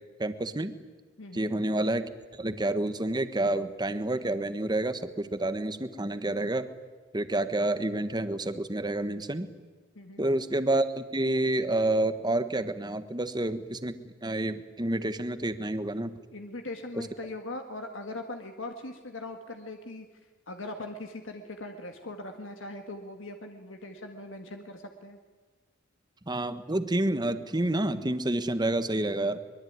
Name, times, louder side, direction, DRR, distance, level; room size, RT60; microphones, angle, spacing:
voice 1, 0.2-0.8 1.3-6.7 7.1-9.5 10.2-16.1 17.0-17.1 26.3-29.4, right 1 dB, 20° right, 11 dB, 1.3 m, -29 dB
voice 2, 1.2-1.5 10.0-10.3 16.3-20.1 20.5-25.2, left 2 dB, 70° left, 5 dB, 1.8 m, -40 dB
23.5 x 22.0 x 9.5 m, 1.4 s
head